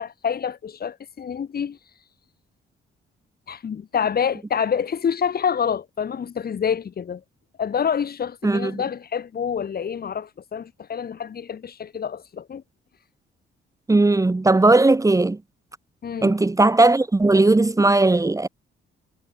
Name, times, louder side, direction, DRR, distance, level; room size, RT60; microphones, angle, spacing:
voice 1, 0.0-1.8 3.5-7.2 7.6-12.6 16.0-16.3, left 7 dB, 50° left, 6.5 m, -27 dB
voice 2, 8.4-8.8 13.9-15.4 16.2-18.5, right 2 dB, 15° right, 1.9 m, -17 dB
cardioid pair, 90°, 20 cm